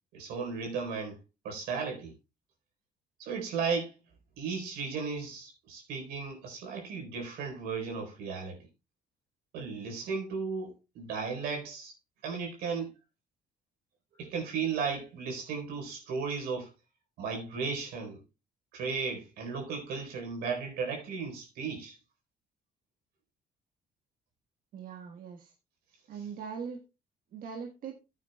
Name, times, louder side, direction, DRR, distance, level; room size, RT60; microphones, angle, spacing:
voice 1, 0.1-1.2 1.4-2.1 3.2-3.9 4.4-8.7 9.5-11.9 12.2-12.9 14.2-16.7 17.2-18.2 18.7-22.0, right 5 dB, 90° right, 4.2 m, -35 dB
voice 2, 24.7-25.5 26.1-26.8 27.3-28.0, right 6 dB, 65° right, 1.5 m, -41 dB
14.0 x 9.0 x 2.3 m
cardioid pair, 90°, 15 cm